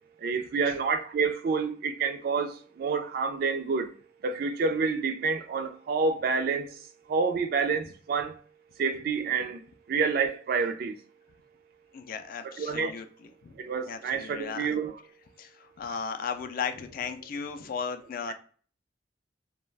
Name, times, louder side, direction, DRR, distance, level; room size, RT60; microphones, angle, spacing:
voice 1, 0.2-3.9 4.2-6.8 7.1-8.4 8.8-9.6 9.9-11.0 12.6-12.9 13.6-15.0, right 5 dB, 55° right, 0.3 m, -28 dB
voice 2, 11.9-13.1 13.4-13.6 13.8-14.7 15.4-18.3, left 6 dB, 50° left, 0.3 m, -36 dB
2.3 x 2.1 x 3.2 m
head